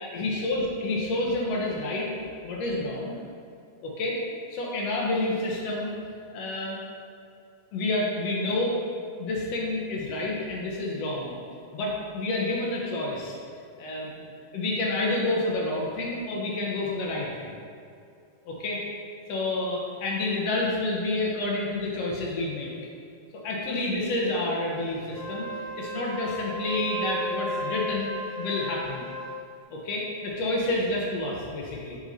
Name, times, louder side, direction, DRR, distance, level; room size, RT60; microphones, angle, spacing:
voice 1, 0.0-2.1 2.4-3.2 3.8-4.2 4.5-5.9 6.3-6.8 7.7-8.8 9.2-11.3 11.7-13.4 13.8-14.2 14.5-17.6 18.4-18.8 19.3-22.7 23.4-25.5 25.8-28.1 28.3-29.0 29.7-32.0, left 2 dB, 70° left, -3 dB, 1.5 m, -29 dB
Wind instrument woodwind instrument, 25.0-29.3, equal, 70° right, 2.9 m, -34 dB
7.7 x 5.5 x 2.6 m, 2.4 s
omnidirectional pair, 3.9 m